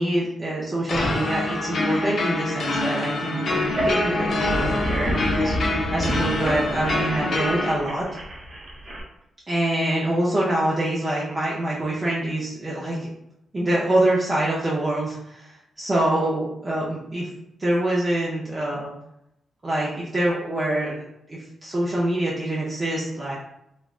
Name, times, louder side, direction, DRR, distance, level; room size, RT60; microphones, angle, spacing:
voice 1, 0.0-5.5 5.9-8.0 9.5-13.1 13.5-17.3 17.6-18.9 19.6-21.0 21.3-23.3, right 1 dB, 30° right, -6 dB, 0.6 m, -25 dB
sound 1, 0.9-7.7, left 2 dB, 60° left, 0.5 m, -25 dB
sound 2, 3.6-9.0, equal, 45° right, 1.1 m, -29 dB
3.1 x 2.4 x 2.4 m, 0.81 s
cardioid pair, 85°, 0 cm